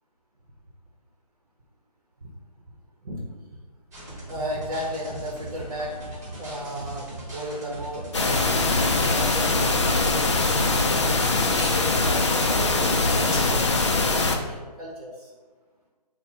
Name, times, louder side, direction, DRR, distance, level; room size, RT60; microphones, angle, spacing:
sound 1, 3.9-11.4, right 1 dB, 25° right, 1.2 m, -39 dB
voice 1, 4.3-6.0 6.4-8.5 9.1-11.2 11.7-15.3, right 1 dB, 50° right, -2 dB, 0.8 m, -35 dB
sound 2, 4.9-14.0, left 1 dB, ahead, 1.3 m, -45 dB
sound 3, 8.1-14.4, left 3 dB, 45° left, 0.4 m, -22 dB
4.4 x 2.2 x 4.1 m, 1.4 s
hypercardioid pair, 170°, 21 cm